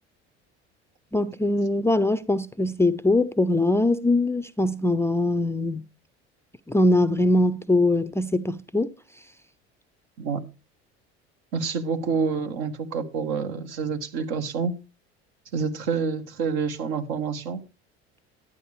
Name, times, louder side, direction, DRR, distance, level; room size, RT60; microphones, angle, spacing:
voice 1, 1.1-5.9 6.7-8.9, left 2 dB, 10° left, 0.4 m, -22 dB
voice 2, 11.5-14.7 15.5-17.6, right 5 dB, 70° right, 1.5 m, -28 dB
12.0 x 8.7 x 3.2 m
hypercardioid pair, 70°, 33 cm